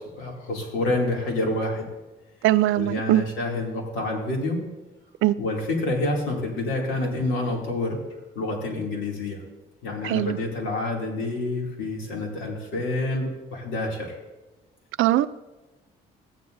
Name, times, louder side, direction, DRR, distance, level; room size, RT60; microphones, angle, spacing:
voice 1, 0.0-1.9 2.8-4.6 5.4-8.0 8.3-9.4 9.8-14.2, left 2 dB, 85° left, 0 dB, 2.6 m, -28 dB
voice 2, 2.4-3.2 5.2-5.4 10.0-10.4 15.0-15.3, right 15 dB, 80° right, 14 dB, 0.4 m, -21 dB
15.0 x 9.7 x 2.6 m, 1.1 s
cardioid pair, 90°, 20 cm